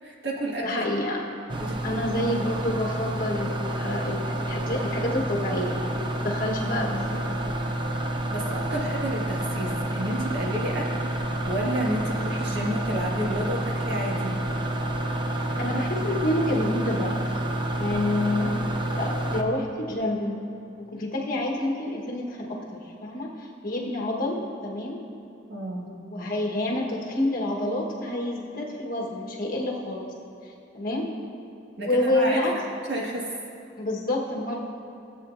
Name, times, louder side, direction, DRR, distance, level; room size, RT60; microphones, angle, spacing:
voice 1, 0.0-0.8 1.6-2.0 8.3-11.2 11.4-14.4 25.5-25.9 31.8-33.3, right 1 dB, 60° right, -3 dB, 1.8 m, -31 dB
voice 2, 0.6-1.3 1.8-7.6 15.3-17.2 17.8-18.5 19.0-20.4 20.9-25.0 25.7-30.1 30.7-31.1 31.8-32.6 33.8-34.6, left 1 dB, 50° left, -2 dB, 1.4 m, -28 dB
sound 1, 1.5-19.4, right 1 dB, 25° right, 0.6 m, -29 dB
16.5 x 8.2 x 2.6 m, 2.8 s
head